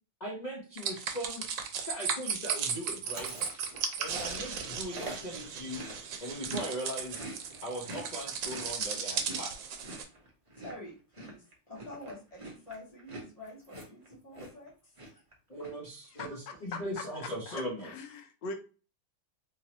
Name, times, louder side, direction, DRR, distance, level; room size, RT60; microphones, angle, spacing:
voice 1, 0.2-1.4 1.8-3.5 4.0-5.8 6.2-7.2 7.6-9.8 15.5-17.9, equal, 50° left, -4 dB, 0.5 m, -39 dB
sound 1, 0.8-10.0, right 6 dB, 70° right, 1.2 m, -36 dB
Chewing mastication, 3.0-6.7 7.0-14.7 15.0-15.3 15.6-16.3, right 1 dB, 45° right, 0.4 m, -45 dB
voice 2, 10.6-15.2, left 1 dB, 25° left, -4 dB, 0.9 m, -48 dB
voice 3, 17.5-18.5, left 3 dB, 70° left, 5 dB, 1.2 m, -40 dB
3.6 x 2.9 x 2.9 m, 0.36 s
omnidirectional pair, 2.2 m